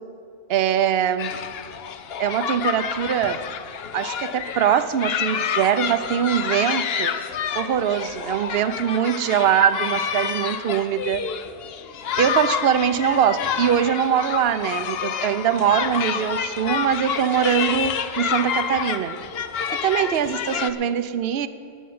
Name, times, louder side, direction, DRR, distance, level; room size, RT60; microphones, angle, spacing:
voice 1, 0.5-1.3 2.2-3.4 3.9-7.2 7.5-11.2 12.2-19.2 19.8-21.5, right 9 dB, 70° right, 13 dB, 0.8 m, -22 dB
sound 1, 1.2-20.7, left 7 dB, 70° left, 0.9 m, -28 dB
10.0 x 8.9 x 9.4 m, 2.4 s
omnidirectional pair, 1.1 m